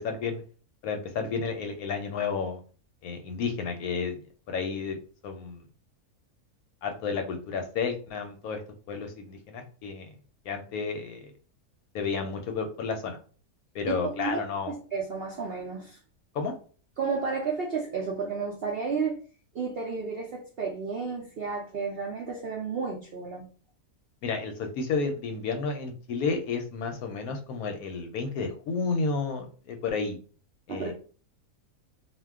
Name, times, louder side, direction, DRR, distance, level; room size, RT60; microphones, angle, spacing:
voice 1, 0.0-0.4 0.8-2.6 3.0-4.2 4.5-5.0 5.2-5.6 6.8-8.6 8.9-10.1 10.5-11.3 11.9-13.2 13.7-14.7 16.3-16.5 24.2-30.2 30.7-30.9, left 5 dB, 75° left, 5 dB, 1.0 m, -31 dB
voice 2, 13.9-14.4 14.9-16.0 17.0-19.2 19.5-23.5 30.7-30.9, right 5 dB, 70° right, -1 dB, 0.5 m, -32 dB
2.5 x 2.2 x 3.4 m, 0.40 s
omnidirectional pair, 1.6 m